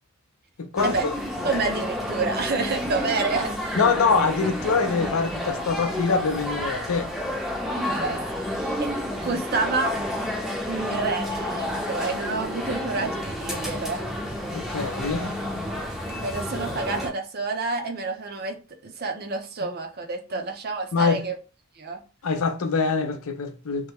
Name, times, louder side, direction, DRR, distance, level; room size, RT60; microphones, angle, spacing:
voice 1, 0.6-0.9 3.8-7.1 14.5-15.3 20.3-20.4 20.9-21.3 22.2-23.9, left 4 dB, 90° left, 0.6 m, -24 dB
sound 1, 0.8-17.1, left 1 dB, ahead, 0.6 m, -30 dB
voice 2, 1.4-3.5 7.8-8.9 9.2-10.0 10.6-14.1 16.1-21.4 21.8-22.0, right 3 dB, 50° right, 0.6 m, -29 dB
3.1 x 2.1 x 3.5 m
head